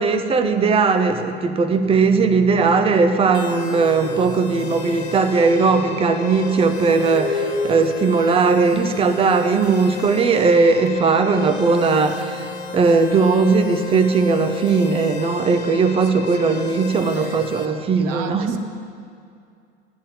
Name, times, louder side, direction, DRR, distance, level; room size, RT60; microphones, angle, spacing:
voice 1, 0.0-18.6, right 4 dB, 15° right, 9 dB, 0.5 m, -18 dB
sound 1, 1.6-16.3, left 1 dB, 85° right, 2.6 m, -34 dB
sound 2, 3.3-17.7, left 5 dB, 65° left, 1.4 m, -35 dB
voice 2, 16.0-16.6 17.0-17.7 18.0-18.6, right 6 dB, 45° right, 5 dB, 1.0 m, -37 dB
15.0 x 9.7 x 2.9 m, 2.3 s
figure-of-eight pair, 85°, 35 cm